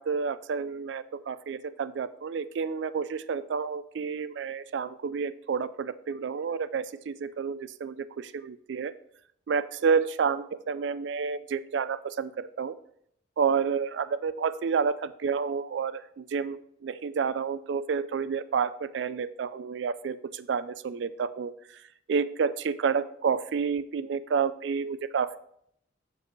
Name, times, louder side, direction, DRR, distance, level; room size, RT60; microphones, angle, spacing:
voice 1, 0.0-8.9 9.5-12.8 13.4-21.5 22.1-25.4, right 6 dB, 65° right, 15 dB, 0.3 m, -30 dB
7.9 x 7.2 x 3.1 m, 0.71 s
head